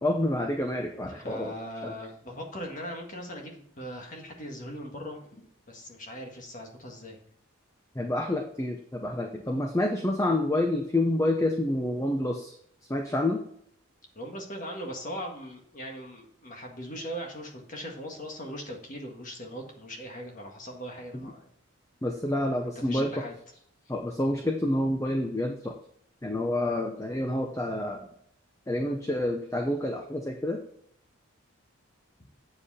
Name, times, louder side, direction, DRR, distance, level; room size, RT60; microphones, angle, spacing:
voice 1, 0.0-1.5 1.8-1.9 8.0-12.5 12.9-13.4 21.1-21.3 22.0-23.2 23.9-25.7 26.2-28.1 28.7-30.6, left 1 dB, 15° left, 3 dB, 0.7 m, -28 dB
voice 2, 1.0-7.2 14.2-21.5 22.8-23.3, equal, 35° left, 1 dB, 1.7 m, -40 dB
8.4 x 7.5 x 4.2 m, 0.67 s
head